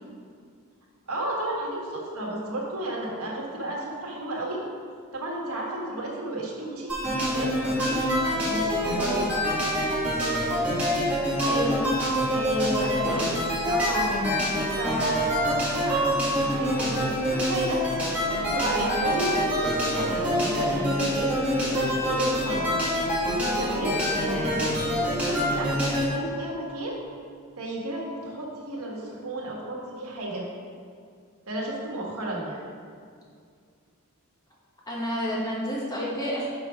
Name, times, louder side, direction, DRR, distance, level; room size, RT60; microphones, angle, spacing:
voice 1, 1.1-4.6 5.1-9.3 12.3-13.3 13.7-14.2 14.7-17.8 18.5-22.8 23.4-27.0 27.6-30.4 31.5-32.6, right 1 dB, 85° right, -3 dB, 1.5 m, -32 dB
sound 1, 6.9-26.1, equal, 5° right, 1.8 m, -26 dB
voice 2, 11.4-12.0 12.8-13.4 20.0-20.1 34.9-36.5, equal, 15° left, -5 dB, 1.3 m, -30 dB
5.8 x 5.0 x 4.9 m, 2.2 s
head